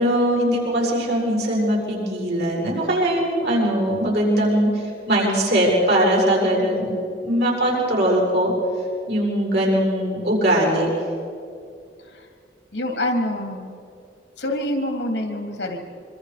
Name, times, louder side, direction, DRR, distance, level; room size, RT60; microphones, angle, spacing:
voice 1, 0.0-6.9 7.2-8.5 9.1-10.9, right 1 dB, 65° right, -4 dB, 6.9 m, -20 dB
voice 2, 12.7-13.8 14.4-15.8, left 1 dB, 80° left, 3 dB, 2.9 m, -26 dB
25.0 x 25.0 x 5.1 m, 2.4 s
head